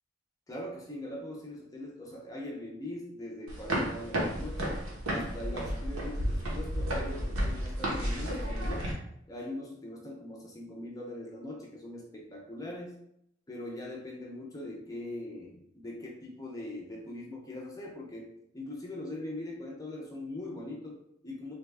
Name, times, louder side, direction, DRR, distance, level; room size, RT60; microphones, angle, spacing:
voice 1, 0.5-4.8 5.1-8.9 9.3-13.0 13.5-21.5, left 1 dB, 15° left, -2 dB, 0.5 m, -41 dB
sound 1, 3.5-8.9, equal, 85° right, 0.9 m, -32 dB
3.3 x 2.3 x 3.3 m, 0.74 s
head